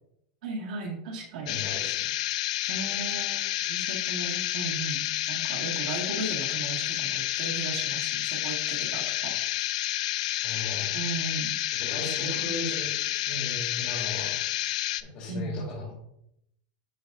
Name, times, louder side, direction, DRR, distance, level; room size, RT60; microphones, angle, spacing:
voice 1, 0.4-1.6 2.7-9.4 10.9-11.6 12.0-12.4 15.3-15.7, right 3 dB, 65° right, -1 dB, 1.9 m, -36 dB
sound 1, 1.5-15.0, left 15 dB, 55° left, 0.3 m, -30 dB
voice 2, 1.5-2.1 10.4-11.0 11.8-14.3 15.1-15.9, left 2 dB, 35° left, -8 dB, 2.6 m, -37 dB
11.0 x 4.1 x 2.6 m, 0.79 s
supercardioid pair, 175°, 4 cm